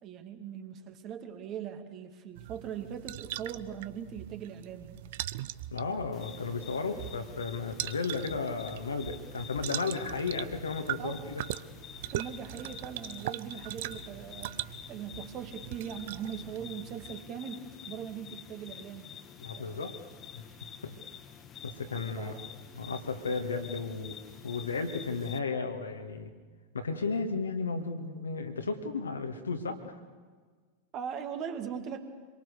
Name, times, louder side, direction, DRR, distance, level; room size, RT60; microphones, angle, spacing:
voice 1, 0.0-5.0 11.0-11.3 12.1-14.5 14.9-19.1 19.5-19.9 22.2-22.5 30.9-32.1, right 8 dB, 35° right, 6 dB, 2.3 m, -40 dB
sound 1, 2.4-17.2, right 15 dB, 50° right, 0.7 m, -41 dB
voice 2, 5.7-11.4 19.4-20.0 20.3-20.5 20.8-20.9 21.6-22.4 22.7-24.1 24.4-26.3 26.7-30.0, left 4 dB, 70° left, 6 dB, 2.2 m, -34 dB
sound 2, 6.1-25.4, left 8 dB, 30° left, 1.5 m, -49 dB
26.0 x 22.5 x 6.7 m, 1.5 s
figure-of-eight pair, 90°, 0 cm